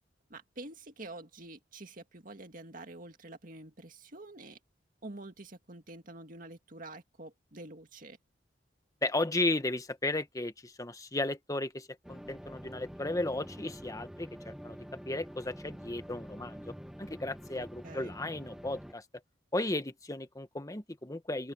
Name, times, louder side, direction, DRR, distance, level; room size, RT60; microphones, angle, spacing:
voice 1, 0.3-4.6 5.0-8.2 17.5-18.2, right 2 dB, 45° right, 2.1 m, -47 dB
voice 2, 9.0-16.7 17.0-19.0 19.5-21.5, left 2 dB, 20° left, 1.2 m, -35 dB
sound 1, 12.0-18.9, equal, ahead, 0.5 m, -47 dB
open air
head